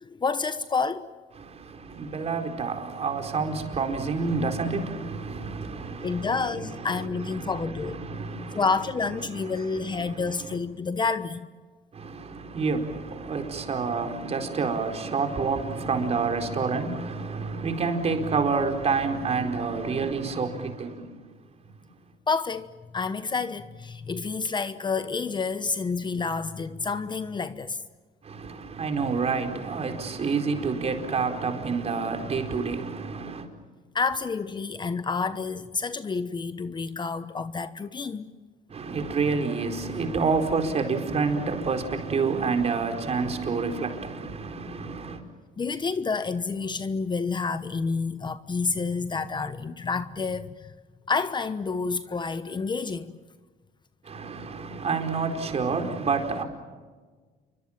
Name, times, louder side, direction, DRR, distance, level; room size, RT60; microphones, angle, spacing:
voice 1, 0.0-1.1 6.0-8.0 8.5-11.5 22.3-22.7 22.9-27.8 33.9-38.3 45.6-50.7 51.1-53.2, left 4 dB, 25° left, 1.0 m, -29 dB
voice 2, 1.4-8.7 9.2-9.7 9.9-10.5 11.9-21.2 28.2-33.5 38.7-45.2 54.0-56.4, right 4 dB, 40° right, 4.5 m, -28 dB
29.0 x 24.0 x 7.4 m
cardioid pair, 110°, 17 cm